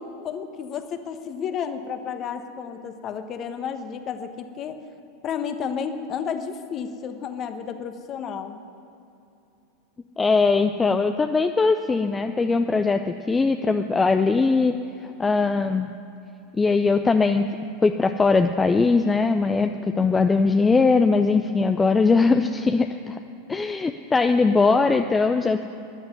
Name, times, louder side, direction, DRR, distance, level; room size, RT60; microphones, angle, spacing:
voice 1, 0.0-4.8 5.2-8.6, left 7 dB, 35° left, 8 dB, 1.3 m, -32 dB
voice 2, 10.2-14.7 15.2-15.9 16.5-17.5 17.8-23.2 23.5-25.6, left 4 dB, 15° left, 7 dB, 0.6 m, -20 dB
13.5 x 11.0 x 9.5 m, 2.7 s
figure-of-eight pair, 85°, 0 cm